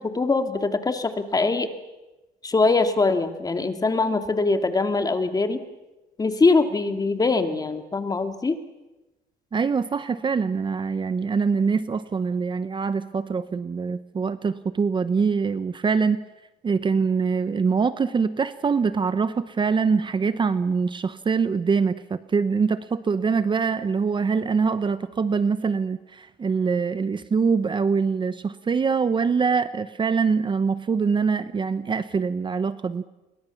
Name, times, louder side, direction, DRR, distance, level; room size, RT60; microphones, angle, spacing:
voice 1, 0.0-1.7 2.4-5.6 6.2-8.6, left 3 dB, 20° left, 7 dB, 2.5 m, -22 dB
voice 2, 9.5-16.2 16.6-33.0, right 5 dB, 30° right, 13 dB, 0.9 m, -24 dB
30.0 x 23.5 x 7.2 m, 1.1 s
cardioid pair, 110°, 17 cm